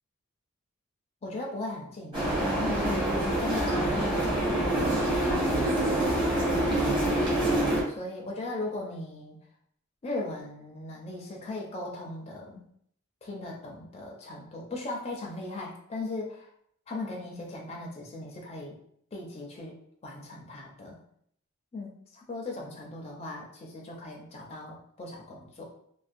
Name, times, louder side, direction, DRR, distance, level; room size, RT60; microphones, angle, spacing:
voice 1, 1.2-4.5 4.8-6.0 7.4-9.4 10.0-12.6 13.2-16.5 16.9-18.8 19.1-21.0 21.7-25.7, left 2 dB, 30° left, -2 dB, 0.4 m, -38 dB
sound 1, 2.1-7.8, right 1 dB, 20° right, 0.7 m, -26 dB
2.4 x 2.0 x 2.5 m, 0.67 s
head